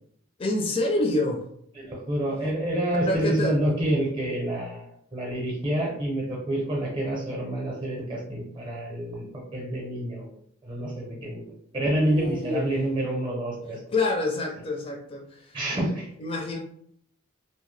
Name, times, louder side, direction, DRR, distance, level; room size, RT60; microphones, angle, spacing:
voice 1, 0.4-1.4 3.1-3.6 11.7-12.7 13.9-15.6 16.2-16.6, left 2 dB, 25° left, 1 dB, 0.4 m, -27 dB
voice 2, 1.7-10.3 10.6-13.8 15.5-16.1, right 1 dB, 20° right, -1 dB, 0.6 m, -28 dB
2.7 x 2.1 x 3.1 m, 0.66 s
head